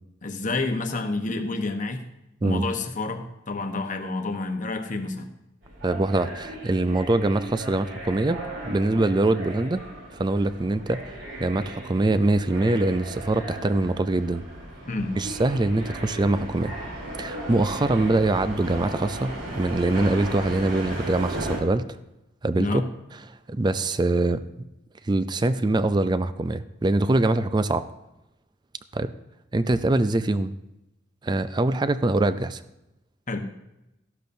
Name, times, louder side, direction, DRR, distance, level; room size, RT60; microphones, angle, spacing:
voice 1, 0.2-2.0 2.4-5.3 14.9-15.1 22.6-22.9 33.3-33.4, left 3 dB, 40° left, 6 dB, 1.0 m, -29 dB
sound 1, 5.6-21.6, right 1 dB, 70° right, 3.4 m, -36 dB
voice 2, 5.8-9.8 10.1-11.0 11.4-14.4 15.2-16.7 17.2-21.8 22.4-22.8 23.3-24.4 25.0-27.9 28.9-29.1 29.5-30.5 31.2-32.6, right 2 dB, 20° right, 12 dB, 0.4 m, -23 dB
14.0 x 12.0 x 2.7 m, 0.92 s
head